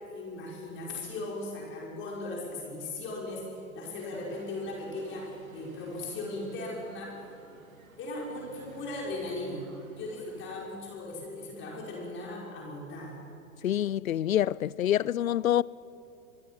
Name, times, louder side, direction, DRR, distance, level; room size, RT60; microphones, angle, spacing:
voice 1, 0.1-7.1 8.0-9.7 10.0-13.3, left 2 dB, 30° left, 6.0 m, -38 dB
sound 1, 4.1-10.8, right 4 dB, 75° right, 3.2 m, -54 dB
voice 2, 13.6-15.6, left 11 dB, 75° left, 0.5 m, -26 dB
25.5 x 23.0 x 6.0 m
figure-of-eight pair, 105°, 41 cm